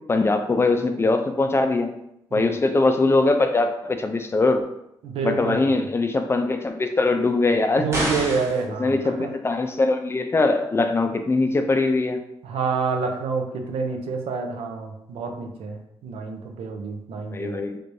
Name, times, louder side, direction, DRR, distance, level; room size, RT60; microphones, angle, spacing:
voice 1, 0.0-1.9 2.3-4.6 5.2-7.9 8.8-12.2 17.3-17.8, left 3 dB, 25° left, 6 dB, 0.4 m, -21 dB
voice 2, 5.0-5.6 7.8-9.3 12.4-17.6, right 5 dB, 85° right, 3 dB, 0.5 m, -28 dB
sound 1, 7.9-8.6, right 1 dB, 30° right, 1.1 m, -26 dB
3.3 x 3.1 x 2.6 m, 0.80 s
cardioid pair, 80°, 10 cm